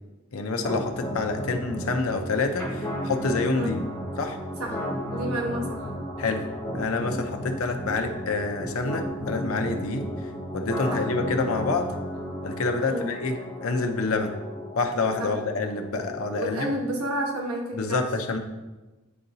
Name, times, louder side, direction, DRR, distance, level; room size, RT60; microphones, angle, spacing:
voice 1, 0.3-3.8 4.2-4.4 6.2-6.4 6.7-10.1 10.5-11.9 12.4-14.4 14.8-16.7 17.7-18.4, left 3 dB, 70° left, 5 dB, 0.7 m, -27 dB
sound 1, 0.6-16.6, equal, 10° left, 1.4 m, -34 dB
voice 2, 5.1-5.9 10.9-11.0 12.9-13.1 15.2-15.3 16.3-18.0, right 1 dB, 85° right, -1 dB, 1.2 m, -30 dB
9.6 x 3.8 x 2.7 m, 1.1 s
head